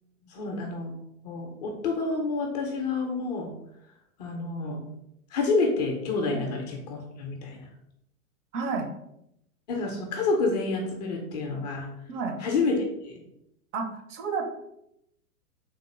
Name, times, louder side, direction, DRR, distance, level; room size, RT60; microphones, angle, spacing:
voice 1, 0.3-0.9 1.2-3.5 4.2-4.8 5.3-7.7 9.7-11.9 12.4-13.2, left 3 dB, 30° left, 2 dB, 0.4 m, -28 dB
voice 2, 8.5-8.9 12.1-12.4 13.7-14.5, right 4 dB, 60° right, 5 dB, 0.7 m, -31 dB
3.5 x 2.0 x 3.1 m, 0.80 s
hypercardioid pair, 115°, 42 cm